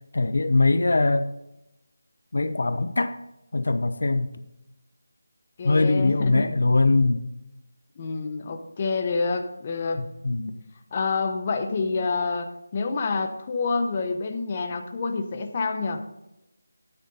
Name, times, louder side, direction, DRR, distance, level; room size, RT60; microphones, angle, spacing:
voice 1, 0.1-1.3 2.3-3.2 3.5-4.3 5.6-7.3 10.0-10.5, left 3 dB, 65° left, 10 dB, 0.8 m, -22 dB
voice 2, 5.6-6.5 8.0-10.1 10.9-16.0, left 4 dB, 25° left, 5 dB, 1.0 m, -28 dB
13.0 x 9.4 x 4.0 m, 0.90 s
figure-of-eight pair, 170°, 0 cm